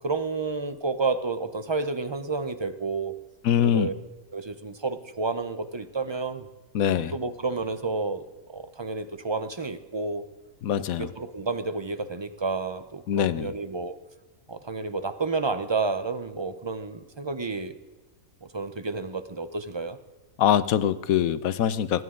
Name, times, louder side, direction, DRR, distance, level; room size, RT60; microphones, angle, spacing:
voice 1, 0.0-3.1 3.6-3.9 4.3-6.5 7.1-8.2 8.5-10.2 10.8-13.9 14.5-17.7 18.5-20.0, right 3 dB, 30° right, 11 dB, 0.6 m, -30 dB
voice 2, 3.4-3.9 6.7-7.1 10.6-11.1 13.1-13.5 20.4-22.0, left 9 dB, 80° left, 14 dB, 1.2 m, -23 dB
26.0 x 11.0 x 3.8 m, 1.2 s
omnidirectional pair, 1.5 m